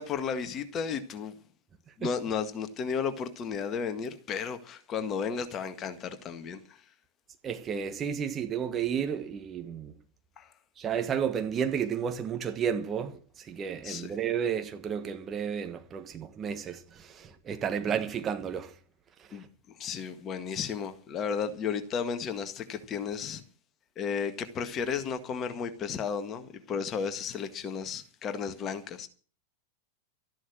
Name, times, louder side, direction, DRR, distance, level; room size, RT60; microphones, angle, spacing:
voice 1, 0.0-1.3 2.0-6.6 10.4-10.5 13.8-14.2 19.3-19.4 19.8-23.4 23.9-29.1, left 6 dB, 30° left, 1.7 m, -33 dB
voice 2, 7.4-9.9 10.8-13.2 13.5-16.8 17.2-18.7, right 8 dB, 25° right, 1.4 m, -32 dB
13.5 x 11.0 x 6.3 m
figure-of-eight pair, 90°, 0 cm